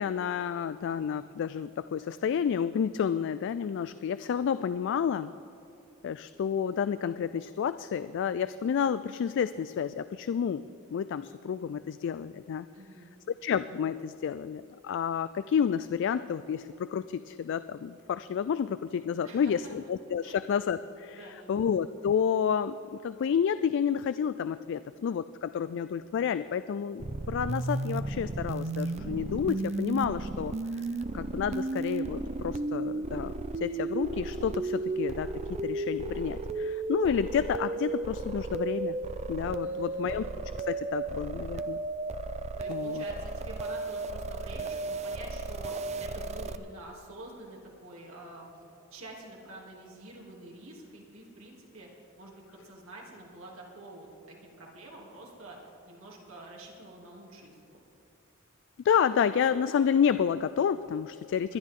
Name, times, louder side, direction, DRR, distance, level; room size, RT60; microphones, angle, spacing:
voice 1, 0.0-5.3 6.0-10.6 10.9-12.7 13.4-30.5 31.1-33.3 33.6-39.0 39.3-40.3 40.7-41.8 42.7-43.0 58.8-61.6, left 7 dB, 60° left, 13 dB, 0.3 m, -30 dB
voice 2, 12.7-13.1 19.2-19.7 20.2-20.4 21.1-21.6 39.6-40.2 42.6-48.5 48.9-51.9 52.2-57.8, right 2 dB, 75° right, -2 dB, 2.9 m, -47 dB
sound 1, 27.0-46.5, right 3 dB, 35° right, 0.5 m, -34 dB
21.5 x 11.5 x 3.7 m, 2.8 s
head